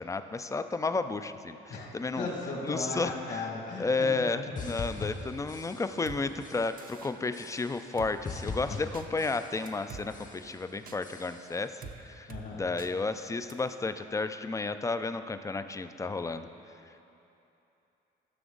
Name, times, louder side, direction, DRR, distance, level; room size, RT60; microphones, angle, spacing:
voice 1, 0.0-2.3 2.6-3.5 3.8-16.5 16.9-17.0, left 3 dB, 15° left, 10 dB, 0.4 m, -32 dB
voice 2, 1.7-3.8 12.3-12.6, left 3 dB, 65° left, -2 dB, 2.0 m, -36 dB
sound 1, 4.6-6.1 6.4-6.9 7.3-8.0 8.2-9.8 10.1-10.6 11.0-11.7, left 4 dB, 40° left, 1.0 m, -42 dB
Drum kit, 6.1-6.2 6.8-7.1 8.0-8.1 8.9-9.1 9.7-10.0 10.9-11.0 11.8-12.0 12.3-12.4 12.8-12.9 13.5-13.6, right 5 dB, 45° right, 0.7 m, -44 dB
13.0 x 6.1 x 3.9 m, 2.9 s
cardioid pair, 90°, 20 cm